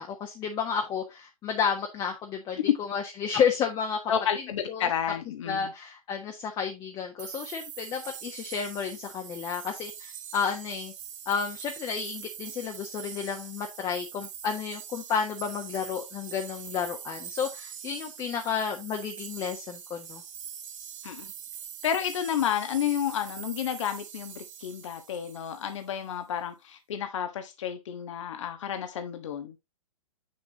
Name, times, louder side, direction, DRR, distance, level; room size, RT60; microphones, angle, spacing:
voice 1, 0.0-4.0 4.3-4.9 5.5-10.9 11.2-20.2, left 6 dB, 25° left, 1.3 m, -31 dB
voice 2, 4.1-5.7 21.0-21.3 21.8-29.5, left 9 dB, 55° left, 1.3 m, -31 dB
sound 1, 7.2-25.9, right 8 dB, 60° right, 1.6 m, -43 dB
7.8 x 6.5 x 2.9 m
figure-of-eight pair, 110°, 18 cm